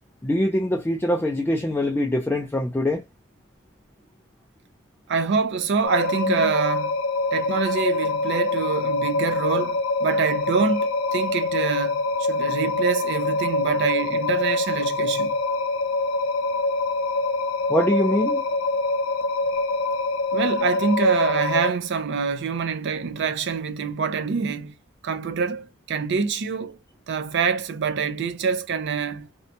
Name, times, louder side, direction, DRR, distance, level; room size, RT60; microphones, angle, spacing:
voice 1, 0.2-3.0 17.7-18.4, left 1 dB, 10° left, 0.3 m, -23 dB
voice 2, 5.1-7.0 7.3-15.3 20.3-24.7 25.0-26.8 27.1-29.3, right 5 dB, 60° right, 0.4 m, -25 dB
sound 1, 5.8-21.7, left 3 dB, 85° left, 0.5 m, -25 dB
2.7 x 2.2 x 2.6 m
head